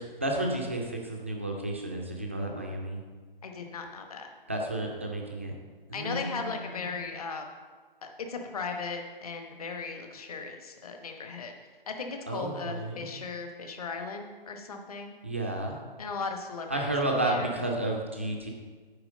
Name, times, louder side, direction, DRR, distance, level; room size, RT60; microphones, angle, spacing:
voice 1, 0.0-3.0 4.5-5.5 5.9-6.9 12.3-13.1 15.2-15.8 16.7-18.5, right 1 dB, 15° right, 1 dB, 0.4 m, -32 dB
voice 2, 3.4-4.3 5.9-7.5 8.3-11.5 11.9-15.1 16.0-16.9 17.2-17.5, left 4 dB, 40° left, 4 dB, 1.0 m, -37 dB
8.9 x 4.6 x 6.4 m, 1.5 s
figure-of-eight pair, 150°, 29 cm